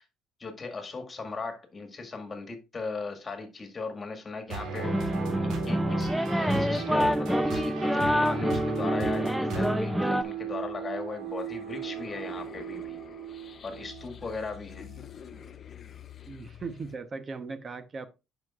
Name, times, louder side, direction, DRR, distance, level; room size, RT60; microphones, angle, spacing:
voice 1, 0.4-5.1 5.4-13.0 13.6-14.9, left 4 dB, 30° left, 1.9 m, -38 dB
sound 1, 4.5-15.0, right 7 dB, 70° right, 1.9 m, -37 dB
sound 2, 4.8-10.2, equal, 5° right, 0.6 m, -27 dB
sound 3, 8.0-17.0, left 8 dB, 45° left, 0.5 m, -49 dB
voice 2, 16.3-18.1, right 4 dB, 35° right, 1.0 m, -38 dB
10.5 x 5.2 x 2.5 m
supercardioid pair, 80°, 0 cm